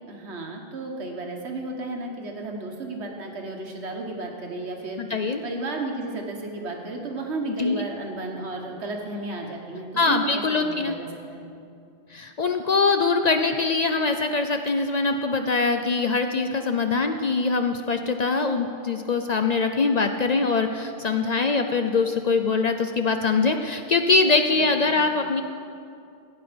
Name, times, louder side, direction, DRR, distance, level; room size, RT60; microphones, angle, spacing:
voice 1, 0.1-5.0 5.4-11.5 24.5-25.0, right 2 dB, 90° right, 2 dB, 1.5 m, -33 dB
voice 2, 5.0-5.4 7.6-7.8 10.0-11.0 12.1-25.4, left 4 dB, 50° left, 6 dB, 0.5 m, -23 dB
15.5 x 8.2 x 5.1 m, 2.5 s
omnidirectional pair, 1.1 m